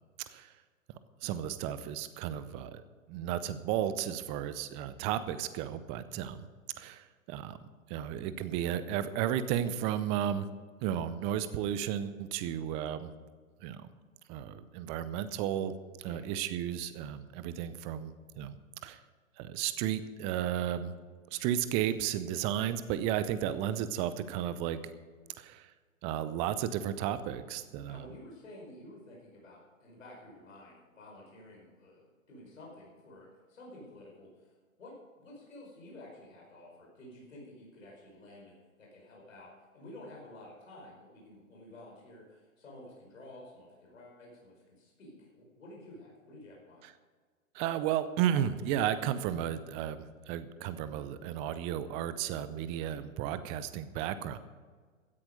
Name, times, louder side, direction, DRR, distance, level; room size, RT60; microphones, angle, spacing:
voice 1, 1.2-2.8 3.1-6.5 6.8-7.6 7.9-10.5 10.8-13.1 13.6-13.9 14.3-15.7 16.0-18.6 18.8-19.0 19.4-20.9 21.3-24.8 25.4-25.7 26.0-28.0 47.5-54.4, right 10 dB, 15° right, 14 dB, 0.5 m, -33 dB
voice 2, 27.8-34.5 34.8-46.8, left 1 dB, 70° left, -3 dB, 5.0 m, -51 dB
16.0 x 10.5 x 5.1 m, 1.5 s
figure-of-eight pair, 120°, 40 cm